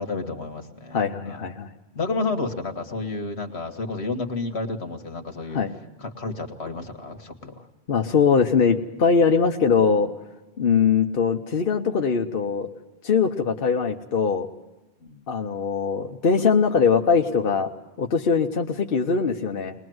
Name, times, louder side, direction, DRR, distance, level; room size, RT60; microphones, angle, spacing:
voice 1, 0.0-1.5 2.0-5.6 6.0-7.7 15.0-15.2, left 3 dB, 85° left, 6 dB, 2.0 m, -31 dB
voice 2, 0.9-1.7 5.5-5.7 7.9-10.1 10.6-12.7 13.0-14.5 15.3-17.7 18.0-19.7, left 5 dB, 60° left, 3 dB, 1.1 m, -21 dB
21.5 x 20.5 x 7.8 m, 1.1 s
omnidirectional pair, 1.1 m